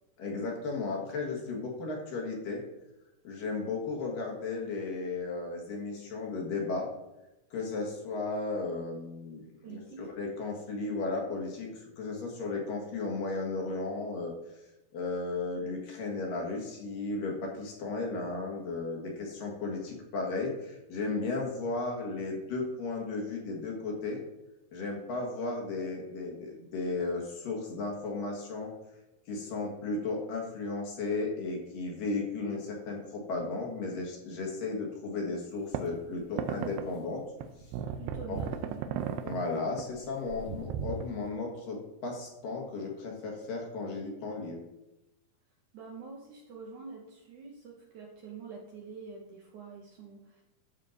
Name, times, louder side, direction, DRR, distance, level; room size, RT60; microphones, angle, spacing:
voice 1, 0.2-2.6 3.2-6.9 7.5-14.3 14.9-24.2 24.7-28.7 29.3-37.2 38.3-38.4 39.2-44.6, left 3 dB, 65° left, -1 dB, 2.9 m, -35 dB
voice 2, 9.6-10.1 37.9-38.9 45.7-50.4, right 5 dB, 70° right, -1 dB, 2.0 m, -46 dB
sound 1, 35.7-35.8 36.4-36.9 37.4-39.5 39.8-40.0 40.3-41.1, right 8 dB, 90° right, 2.8 m, -35 dB
12.0 x 6.5 x 3.9 m, 0.95 s
omnidirectional pair, 4.6 m